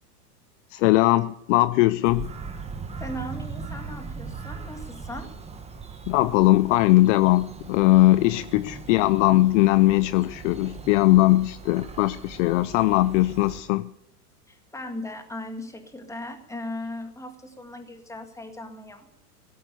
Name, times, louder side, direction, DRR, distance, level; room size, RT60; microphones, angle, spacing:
voice 1, 0.7-2.3 6.1-13.9, left 17 dB, 50° left, 15 dB, 0.6 m, -20 dB
Bird vocalization bird call bird song, 2.0-13.6, right 5 dB, 15° right, 1.5 m, -39 dB
voice 2, 3.0-5.3 8.8-8.9 14.5-19.1, left 1 dB, 5° left, 6 dB, 1.9 m, -38 dB
16.0 x 9.3 x 8.1 m, 0.78 s
hypercardioid pair, 110°, 47 cm